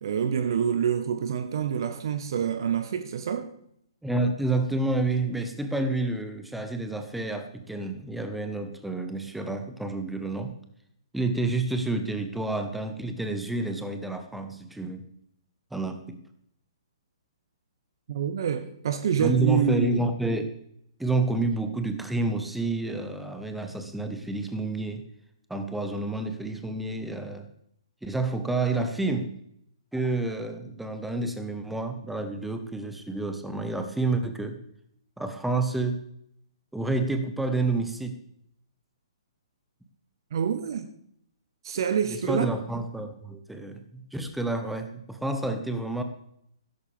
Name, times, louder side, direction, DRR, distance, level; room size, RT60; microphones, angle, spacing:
voice 1, 0.0-3.5 18.1-20.0 40.3-40.9 41.6-42.5, right 8 dB, 50° right, 1.1 m, -27 dB
voice 2, 4.0-10.5 11.1-15.0 15.7-16.2 19.2-20.5 21.0-25.0 25.5-27.5 28.0-29.3 29.9-34.6 35.2-36.0 36.7-38.2 42.1-46.0, right 2 dB, 5° right, 1.3 m, -29 dB
16.5 x 14.0 x 3.5 m
figure-of-eight pair, 125°, 3 cm